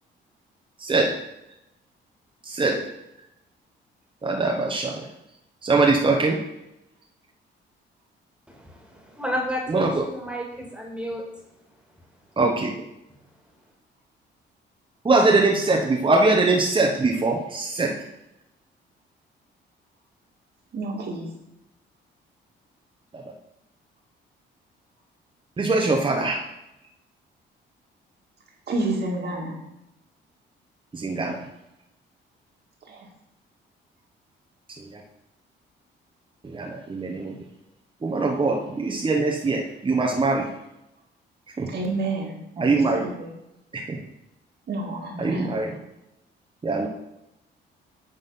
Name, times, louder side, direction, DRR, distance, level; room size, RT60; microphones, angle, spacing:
voice 1, 0.8-1.2 2.5-2.9 4.2-5.0 5.6-6.4 9.7-10.0 12.4-12.8 15.0-18.0 25.6-26.4 30.9-31.4 34.8-35.0 36.4-37.3 38.0-40.5 41.6-41.7 42.6-43.0 43.7-44.0 45.2-45.7 46.6-46.9, right 3 dB, 25° right, 1.1 m, -22 dB
voice 2, 8.5-11.2, equal, 5° right, 2.2 m, -32 dB
voice 3, 20.7-21.3 28.7-29.6 32.8-33.1 41.7-43.3 44.7-45.5, right 2 dB, 55° right, 2.2 m, -30 dB
9.2 x 4.0 x 5.7 m
cardioid pair, 90°, 20 cm